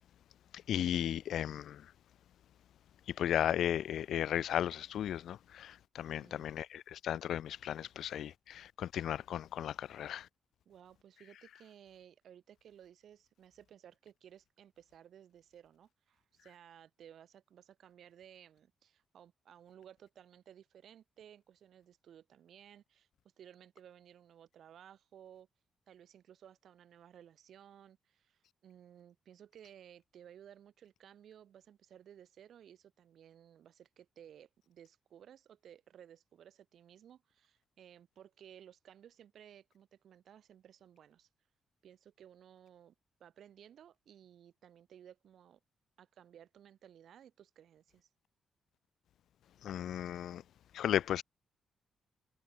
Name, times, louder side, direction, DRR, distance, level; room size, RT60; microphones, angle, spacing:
voice 1, 0.7-1.8 3.1-10.3 49.6-50.4 50.7-51.2, left 10 dB, 80° left, 0.3 m, -35 dB
voice 2, 10.6-23.1 23.4-25.5 25.9-41.3 41.8-42.9 43.2-45.6 46.0-48.1, right 9 dB, 70° right, 5.0 m, -58 dB
cardioid pair, 110°, 0 cm